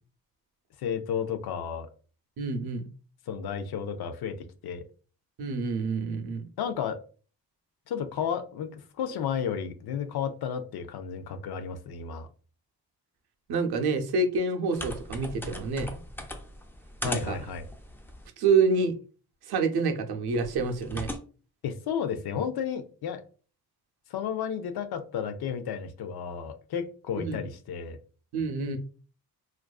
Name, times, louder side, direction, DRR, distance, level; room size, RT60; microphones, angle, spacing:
voice 1, 0.8-1.9 3.3-4.8 6.6-7.0 7.9-12.3 17.0-17.6 21.6-23.2 24.1-28.0, left 7 dB, 70° left, 8 dB, 0.5 m, -32 dB
voice 2, 2.4-2.9 5.4-6.4 13.5-16.0 17.0-17.4 18.4-18.9 19.5-21.1 27.2-27.4 28.3-28.8, right 4 dB, 75° right, 5 dB, 0.6 m, -27 dB
sound 1, 14.7-18.3 20.3-21.2, left 1 dB, 5° left, 0.3 m, -39 dB
2.5 x 2.3 x 2.3 m, 0.39 s
cardioid pair, 75°, 39 cm